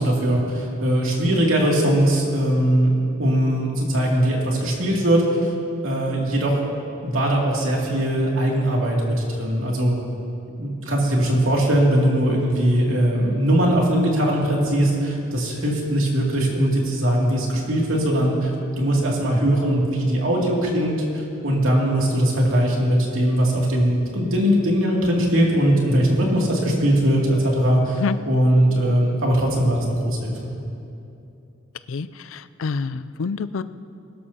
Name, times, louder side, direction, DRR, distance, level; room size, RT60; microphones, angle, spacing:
voice 1, 0.0-5.5 5.8-6.6 7.0-9.9 10.6-30.3, right 1 dB, 85° right, -2 dB, 2.5 m, -20 dB
voice 2, 31.9-33.6, left 4 dB, 75° left, 13 dB, 0.4 m, -27 dB
21.5 x 12.5 x 2.8 m, 2.7 s
head